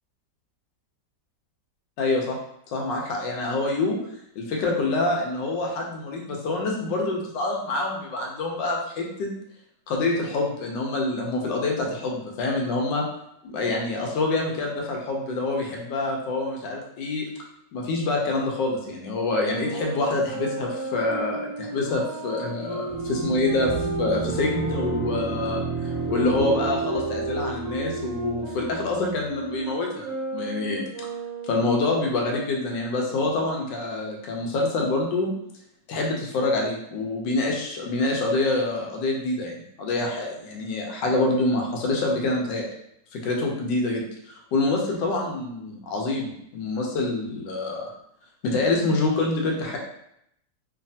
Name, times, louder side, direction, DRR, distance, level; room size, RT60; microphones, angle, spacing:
voice 1, 2.0-2.4 2.7-4.0 4.4-9.3 9.9-13.0 13.4-17.2 17.7-23.7 24.0-30.1 30.3-30.8 31.5-35.3 35.9-42.7 43.1-44.0 44.5-47.9 48.4-49.8, left 2 dB, 90° left, 0 dB, 1.3 m, -26 dB
Wind instrument woodwind instrument, 19.4-25.3 26.1-31.8, right 3 dB, 70° right, 0.8 m, -34 dB
sound 1, 22.9-29.3, right 4 dB, 45° left, 1.4 m, -32 dB
3.2 x 2.3 x 2.6 m, 0.75 s
omnidirectional pair, 1.9 m